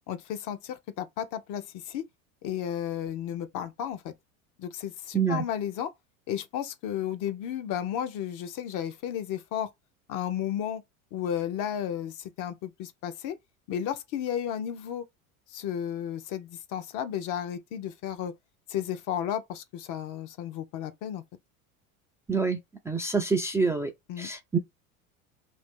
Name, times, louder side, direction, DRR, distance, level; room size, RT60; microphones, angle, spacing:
voice 1, 0.1-2.0 2.4-4.1 4.6-5.9 6.3-9.7 10.1-10.8 11.1-13.4 13.7-15.1 15.5-18.3 18.7-21.2 24.1-24.3, left 10 dB, 50° left, 0.6 m, -33 dB
voice 2, 5.1-5.4 22.3-22.6 22.9-23.9 24.2-24.6, right 5 dB, 5° right, 0.3 m, -26 dB
2.7 x 2.4 x 3.6 m
hypercardioid pair, 85°, 41 cm